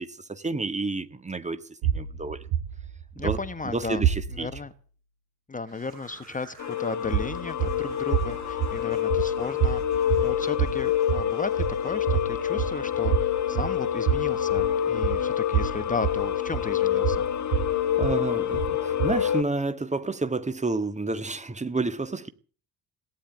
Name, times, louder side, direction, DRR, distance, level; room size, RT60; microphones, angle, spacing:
voice 1, 0.0-2.5 3.2-3.4 3.6-4.5 18.0-22.3, right 3 dB, 15° right, 1.7 m, -30 dB
sound 1, 1.8-4.6 7.0-19.4, right 9 dB, 60° right, 1.8 m, -29 dB
voice 2, 3.1-4.0 4.3-4.7 5.5-17.2, left 4 dB, 15° left, 1.3 m, -35 dB
sound 2, 5.7-12.3, right 4 dB, 80° right, 6.6 m, -52 dB
sound 3, 6.6-19.4, left 10 dB, 35° left, 1.8 m, -27 dB
18.0 x 10.0 x 7.8 m
figure-of-eight pair, 60°, 47 cm